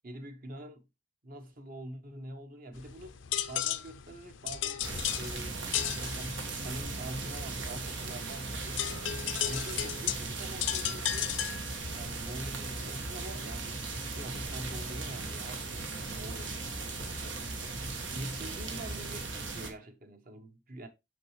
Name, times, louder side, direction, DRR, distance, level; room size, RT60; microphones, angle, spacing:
voice 1, 0.0-0.9 1.2-3.2 3.5-8.9 9.4-11.3 11.9-17.4 18.1-20.9, right 1 dB, 50° right, 1.0 m, -45 dB
sound 1, 2.7-12.0, left 11 dB, 85° left, 0.6 m, -36 dB
sound 2, 4.8-19.7, right 3 dB, 85° right, 1.5 m, -38 dB
6.4 x 6.2 x 3.1 m
head